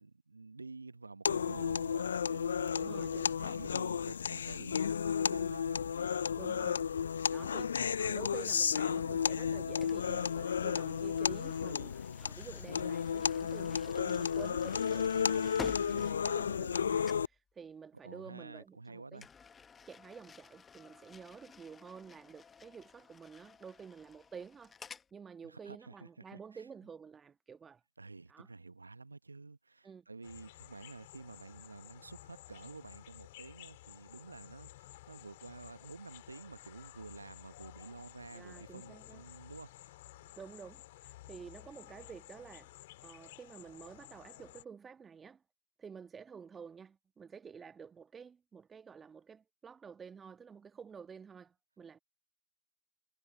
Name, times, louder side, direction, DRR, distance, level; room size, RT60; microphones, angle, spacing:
voice 1, 0.0-6.3 18.0-19.3 25.4-26.6 28.0-40.4, right 3 dB, 85° right, 1.1 m, -50 dB
sound 1, 1.3-17.3, left 7 dB, 70° left, 0.5 m, -33 dB
voice 2, 2.7-3.6 6.4-6.9 7.3-7.7 8.0-19.2 19.9-24.7 25.1-27.8 28.3-28.5 29.8-30.1 38.3-39.2 40.4-42.7 43.0-45.4 45.8-52.0, right 6 dB, 15° right, 2.0 m, -50 dB
sound 2, 9.8-16.8 17.0-17.4 19.2-25.1, left 6 dB, 15° left, 1.1 m, -52 dB
sound 3, 30.2-44.6, left 17 dB, 50° left, 5.0 m, -54 dB
figure-of-eight pair, 105°, 0 cm